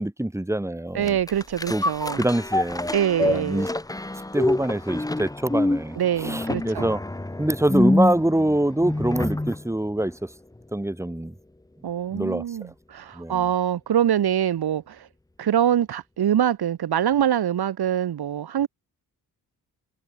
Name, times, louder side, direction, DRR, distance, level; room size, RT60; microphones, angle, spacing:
voice 1, 0.0-1.2 1.7-1.8 2.2-2.9 3.2-3.7 4.3-7.0 7.4-10.1 10.7-11.3 12.1-12.4 13.2-13.4, right 1 dB, 5° right, 3.8 m, -25 dB
voice 2, 0.9-2.2 2.9-3.7 6.0-6.9 11.8-15.1 15.4-18.7, right 10 dB, 75° right, 2.2 m, -24 dB
sound 1, 1.0-9.6 10.1-10.2, left 2 dB, 10° left, 1.5 m, -26 dB
cardioid pair, 110°, 39 cm